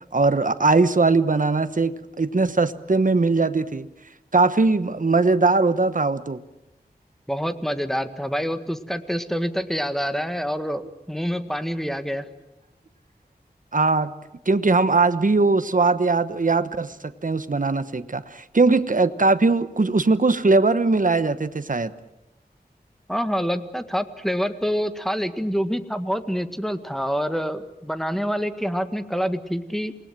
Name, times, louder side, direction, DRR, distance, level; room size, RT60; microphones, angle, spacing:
voice 1, 0.1-3.9 4.3-6.4 13.7-14.1 14.5-21.9, right 3 dB, 55° right, 12 dB, 1.1 m, -20 dB
voice 2, 7.3-12.3 23.1-29.9, equal, ahead, 9 dB, 1.8 m, -26 dB
28.0 x 19.5 x 7.5 m, 0.91 s
wide cardioid pair, 55°, 17 cm